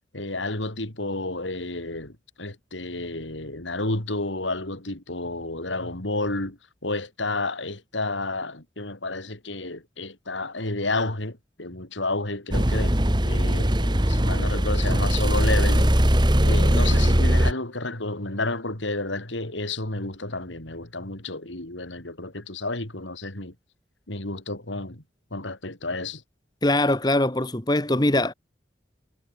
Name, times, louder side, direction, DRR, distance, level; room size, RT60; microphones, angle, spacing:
voice 1, 0.1-12.9 13.3-23.5 24.1-25.0 25.3-26.2, left 2 dB, 85° left, 4.5 m, -31 dB
sound 1, 12.5-17.5, equal, 25° right, 2.4 m, -20 dB
voice 2, 26.6-28.3, left 1 dB, 20° left, 1.4 m, -22 dB
head